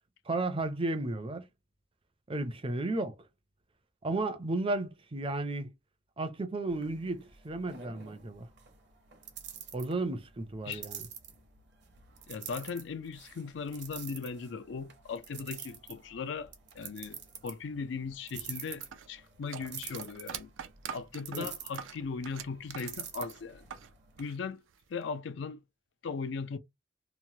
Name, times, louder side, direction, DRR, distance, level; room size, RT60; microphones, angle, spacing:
voice 1, 0.3-1.5 2.3-3.1 4.0-5.7 6.2-8.5 9.7-11.1 21.3-21.5, right 2 dB, 30° right, 0.5 m, -33 dB
sound 1, 6.7-24.2, right 8 dB, 60° right, 0.8 m, -48 dB
voice 2, 12.3-20.5 20.9-23.7 24.2-24.6 24.9-25.6 26.0-26.6, left 5 dB, 65° left, 0.4 m, -38 dB
sound 2, 18.8-23.9 24.2-25.0, right 8 dB, 80° right, 0.4 m, -44 dB
3.1 x 2.1 x 2.7 m
head